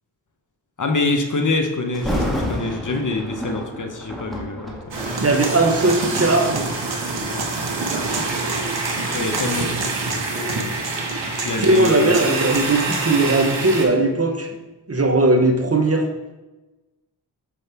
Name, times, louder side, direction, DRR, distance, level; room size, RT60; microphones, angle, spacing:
voice 1, 0.8-4.8 5.4-5.6 7.3-7.5 9.1-10.0 11.1-12.2, left 3 dB, 45° left, 4 dB, 0.9 m, -25 dB
Thunder, 1.9-6.9 7.6-7.8 8.4-11.3 11.6-11.7, equal, ahead, 1.6 m, -31 dB
sound 1, 4.9-13.9, right 3 dB, 80° right, 1.3 m, -26 dB
voice 2, 5.2-6.7 11.6-14.5 14.9-16.1, right 2 dB, 35° right, 5 dB, 0.9 m, -18 dB
sound 2, 5.2-13.1, right 3 dB, 55° right, 1.2 m, -32 dB
6.8 x 5.3 x 3.4 m, 1.1 s
cardioid pair, 50°, 44 cm